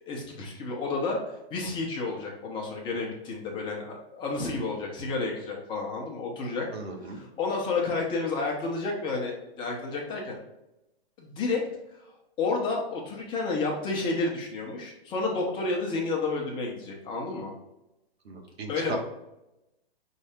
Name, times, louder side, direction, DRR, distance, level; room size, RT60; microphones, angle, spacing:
voice 1, 0.1-6.7 7.0-10.4 11.2-11.6 12.4-17.5 18.7-19.0, left 3 dB, 15° left, -1 dB, 0.8 m, -31 dB
voice 2, 6.7-7.2 18.2-19.0, right 3 dB, 85° right, 3 dB, 1.2 m, -37 dB
5.3 x 2.7 x 3.5 m, 0.92 s
hypercardioid pair, 145°, 31 cm